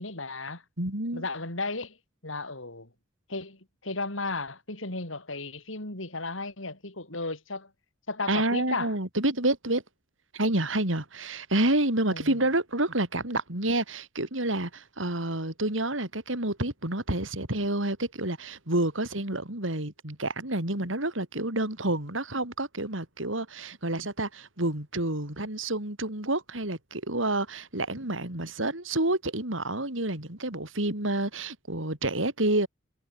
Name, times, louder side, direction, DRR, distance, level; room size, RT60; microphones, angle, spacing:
voice 1, 0.0-0.6 1.1-2.0 2.2-2.9 3.3-7.7 8.1-8.9 12.1-12.4, left 3 dB, 90° left, 6.4 m, -34 dB
voice 2, 0.8-1.2 8.3-9.8 10.3-32.7, right 1 dB, 85° right, 5.3 m, -29 dB
head